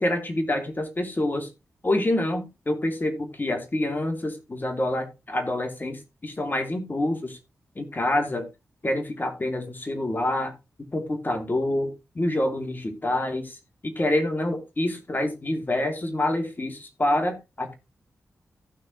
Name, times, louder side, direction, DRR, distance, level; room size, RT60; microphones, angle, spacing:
voice 1, 0.0-1.5 1.8-7.4 7.8-8.5 8.8-10.5 10.9-13.6 13.8-17.8, left 1 dB, 35° left, 2.8 m, -27 dB
15.5 x 6.2 x 3.2 m
cardioid pair, 45°, 6 cm